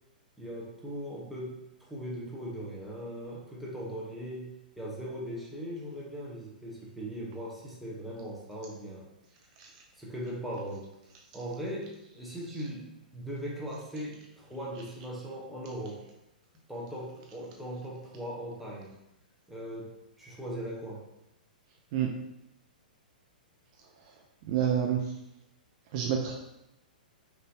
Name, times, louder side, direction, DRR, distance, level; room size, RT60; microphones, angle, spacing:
voice 1, 0.4-9.1 10.0-10.9 11.3-16.0 16.7-19.0 19.5-21.1, equal, ahead, -5 dB, 1.1 m, -39 dB
voice 2, 24.4-25.1 25.9-26.3, right 9 dB, 45° right, 1 dB, 0.6 m, -28 dB
5.4 x 3.0 x 2.8 m, 0.89 s
figure-of-eight pair, 115°, 5 cm